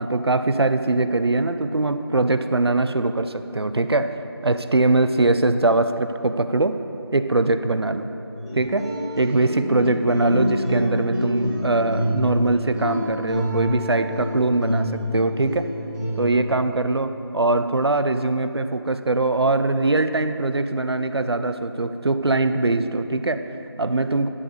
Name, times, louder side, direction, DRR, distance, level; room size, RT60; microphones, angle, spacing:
voice 1, 0.0-4.1 4.4-6.8 7.1-8.1 8.5-8.9 9.2-15.7 16.2-24.3, right 2 dB, 70° right, 10 dB, 0.5 m, -22 dB
sound 1, 8.4-16.6, equal, 10° left, 0.8 m, -28 dB
11.0 x 7.2 x 4.9 m, 3.0 s
figure-of-eight pair, 175°, 14 cm